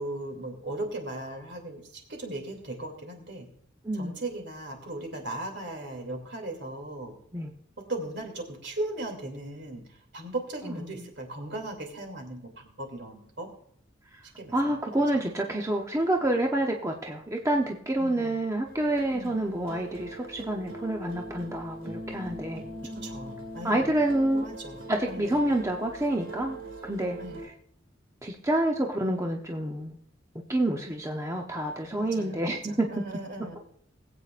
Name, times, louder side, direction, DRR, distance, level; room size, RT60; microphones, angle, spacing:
voice 1, 0.0-3.5 3.9-7.2 7.8-9.8 10.1-13.5 14.4-14.7 18.0-18.4 19.1-19.3 22.8-24.0 24.3-25.4 27.2-27.4 32.0-33.6, right 2 dB, 60° right, 3 dB, 2.7 m, -37 dB
voice 2, 3.8-4.2 7.3-7.5 10.6-11.1 14.1-14.2 14.5-22.7 23.6-24.5 24.9-27.2 28.2-30.0 30.5-32.9, right 1 dB, 15° right, 1 dB, 0.7 m, -28 dB
sound 1, 18.6-27.5, right 1 dB, 80° right, 2.2 m, -42 dB
21.0 x 8.2 x 2.5 m, 0.67 s
head